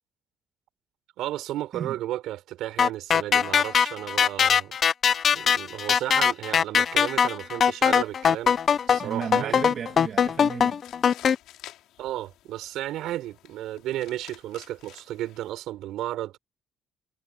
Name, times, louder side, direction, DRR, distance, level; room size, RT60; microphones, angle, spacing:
voice 1, 1.2-4.7 5.3-8.6 8.9-9.6 12.0-16.4, right 14 dB, 75° right, 5.6 m, -33 dB
sound 1, 2.8-11.4, left 7 dB, 35° left, 0.3 m, -21 dB
sound 2, 8.0-15.5, left 14 dB, 90° left, 5.8 m, -51 dB
voice 2, 9.0-10.8, right 7 dB, 40° right, 1.4 m, -34 dB
cardioid pair, 165°, 0 cm